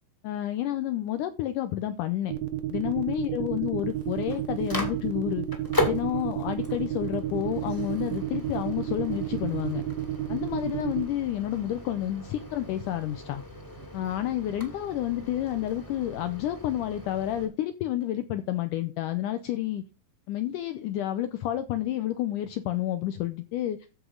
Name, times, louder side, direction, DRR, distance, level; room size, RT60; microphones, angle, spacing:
voice 1, 0.2-2.3 2.7-5.5 5.8-9.8 10.3-13.4 13.9-19.8 20.3-23.8, left 12 dB, 85° left, 1.8 m, -30 dB
sound 1, 2.3-11.0, right 14 dB, 75° right, 2.8 m, -31 dB
Microwave oven, 3.8-17.5, left 1 dB, 10° left, 1.6 m, -37 dB
14.5 x 5.0 x 3.8 m
omnidirectional pair, 4.4 m